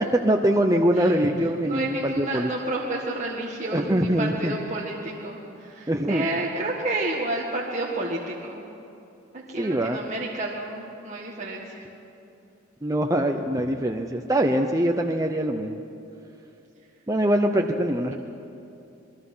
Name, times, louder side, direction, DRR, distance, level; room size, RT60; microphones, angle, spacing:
voice 1, 0.2-2.5 3.7-4.5 5.9-6.2 9.6-10.0 12.8-15.8 17.1-18.1, right 1 dB, 15° right, 3 dB, 0.7 m, -23 dB
voice 2, 1.6-8.6 9.3-11.8, right 2 dB, 35° right, -4 dB, 1.9 m, -30 dB
28.5 x 21.0 x 5.7 m, 2.8 s
head